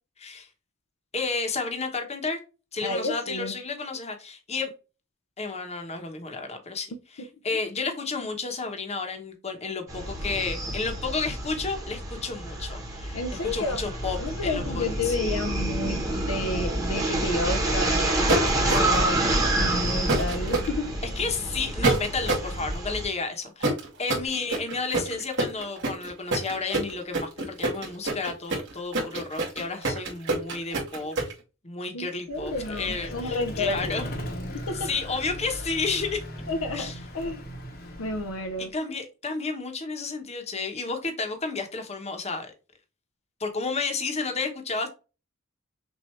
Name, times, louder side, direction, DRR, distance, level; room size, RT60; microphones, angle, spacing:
voice 1, 1.1-2.4 2.7-4.7 5.4-6.9 7.4-13.2 13.5-15.1 21.2-31.2 31.6-34.1 34.7-36.2 36.7-37.0 38.7-42.5 43.4-44.9, left 4 dB, 30° left, 1.1 m, -31 dB
voice 2, 2.8-3.5 13.1-13.9 14.2-19.2 19.6-20.9 31.9-34.1 34.5-34.9 36.5-37.4 38.0-38.7, left 2 dB, 75° left, 0.7 m, -31 dB
sound 1, 9.9-23.1, right 1 dB, 15° right, 1.3 m, -28 dB
sound 2, 18.3-19.1 20.1-20.7 21.8-22.5 23.6-31.3, right 2 dB, 60° right, 2.1 m, -26 dB
Vehicle, 32.3-38.7, equal, 45° left, 1.1 m, -38 dB
6.3 x 2.7 x 3.1 m
head